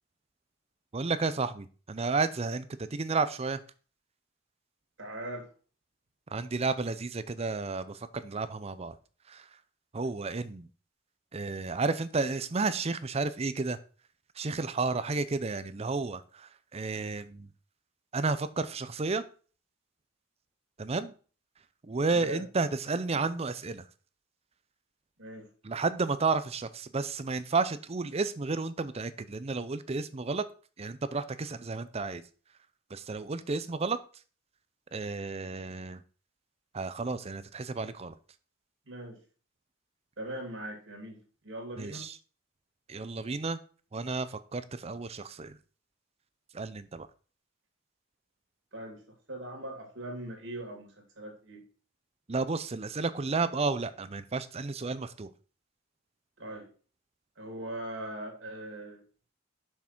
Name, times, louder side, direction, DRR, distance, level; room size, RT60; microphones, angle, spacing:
voice 1, 0.9-3.6 6.3-8.9 9.3-9.5 9.9-10.7 11.3-13.8 14.4-17.5 18.1-19.2 20.8-21.1 21.8-23.8 25.6-30.5 30.8-32.2 32.9-34.0 34.9-36.0 36.7-38.2 41.8-42.2 42.9-43.6 43.9-45.6 46.5-47.1 52.3-55.3, right 3 dB, 30° right, 14 dB, 0.5 m, -32 dB
voice 2, 5.0-5.5 22.1-22.4 25.2-25.5 38.9-39.2 40.2-42.0 48.7-49.0 49.3-51.6 56.4-56.7 57.4-59.0, right 1 dB, 65° right, 2 dB, 2.6 m, -40 dB
6.6 x 5.9 x 4.5 m, 0.38 s
head